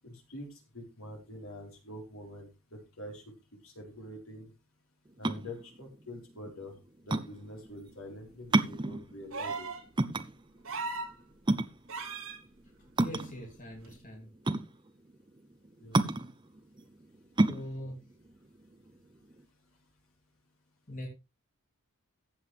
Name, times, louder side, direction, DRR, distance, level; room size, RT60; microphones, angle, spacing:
voice 1, 0.0-3.2 3.6-4.5 5.2-6.7 7.1-9.7 15.8-16.1, left 1 dB, 65° left, 1 dB, 4.4 m, -45 dB
sound 1, 5.1-19.4, right 2 dB, 20° right, 0.7 m, -31 dB
sound 2, 9.3-9.8 10.6-11.1 11.9-12.4 13.8-13.9, right 4 dB, 65° right, 3.1 m, -37 dB
voice 2, 13.0-14.3 17.5-18.0 20.9-21.1, equal, 35° left, 0 dB, 3.0 m, -41 dB
14.5 x 8.0 x 3.4 m, 0.26 s
head